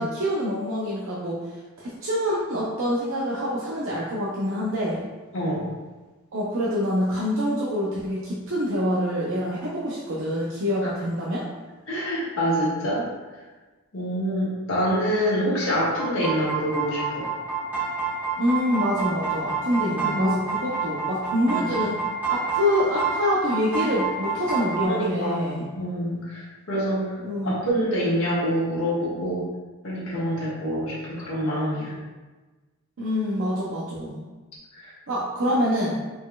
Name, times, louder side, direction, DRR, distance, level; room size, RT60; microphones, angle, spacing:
voice 1, 0.0-5.0 6.3-11.4 18.4-22.0 22.3-25.7 27.2-27.5 33.0-34.2 35.1-36.0, equal, 60° right, -6 dB, 0.6 m, -26 dB
voice 2, 5.3-5.6 11.9-13.0 13.9-17.3 19.8-20.5 21.5-22.0 24.9-27.2 27.4-29.4 29.8-31.9 34.8-34.9, equal, 60° left, -8 dB, 1.5 m, -26 dB
sound 1, 15.7-24.8, right 4 dB, 10° right, 1.2 m, -28 dB
4.2 x 4.1 x 2.3 m, 1.2 s
head